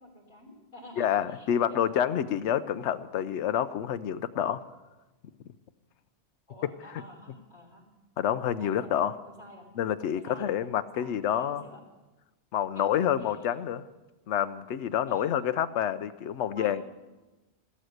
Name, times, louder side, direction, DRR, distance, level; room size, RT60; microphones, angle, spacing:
voice 1, 0.0-2.2 6.5-7.8 8.6-9.7 10.1-11.8 12.8-12.9 13.2-13.4 15.1-15.3 16.5-16.8, equal, 45° left, -1 dB, 3.6 m, -49 dB
voice 2, 1.0-4.6 8.2-9.1 9.8-11.6 12.5-13.8 14.3-16.8, left 10 dB, 80° left, 12 dB, 0.9 m, -28 dB
14.0 x 12.5 x 6.5 m, 1.1 s
omnidirectional pair, 1.2 m